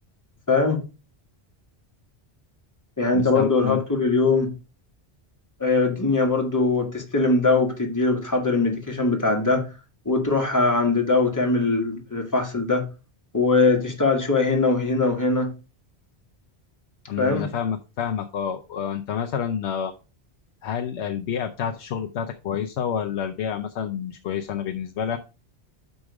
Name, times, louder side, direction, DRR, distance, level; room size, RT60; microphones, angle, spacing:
voice 1, 0.5-0.8 3.0-4.5 5.6-9.7 10.0-12.8 13.3-15.5 17.2-17.5, left 3 dB, 15° left, 1.7 m, -21 dB
voice 2, 3.1-3.8 17.1-19.9 20.6-25.2, left 8 dB, 85° left, 1.0 m, -28 dB
6.2 x 5.2 x 4.7 m
omnidirectional pair, 1.1 m